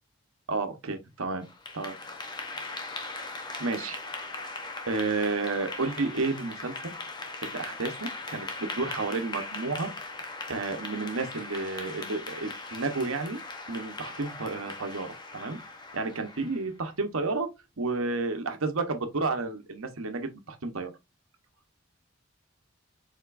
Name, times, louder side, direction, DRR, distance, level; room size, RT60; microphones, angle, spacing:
voice 1, 0.5-1.4 1.7-1.9 3.6-4.0 4.9-6.9 7.4-9.9 10.5-13.4 13.7-15.6 15.9-17.5 17.8-20.9, right 3 dB, 85° right, 1.0 m, -31 dB
Clapping / Applause, 1.4-16.7, left 3 dB, 20° left, 0.8 m, -39 dB
4.7 x 4.3 x 2.5 m
head